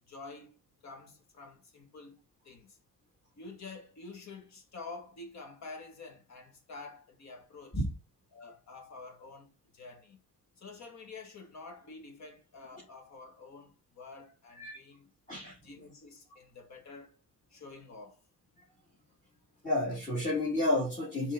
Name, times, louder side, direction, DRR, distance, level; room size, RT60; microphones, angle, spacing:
voice 1, 0.1-0.6 0.8-2.2 2.4-2.8 3.4-7.8 8.3-10.2 10.6-15.1 15.6-17.2 17.5-18.2, left 3 dB, 65° left, 2.2 m, -48 dB
voice 2, 19.6-21.3, left 1 dB, 25° left, 2.5 m, -30 dB
6.6 x 4.5 x 4.0 m
cardioid pair, 90°, 30 cm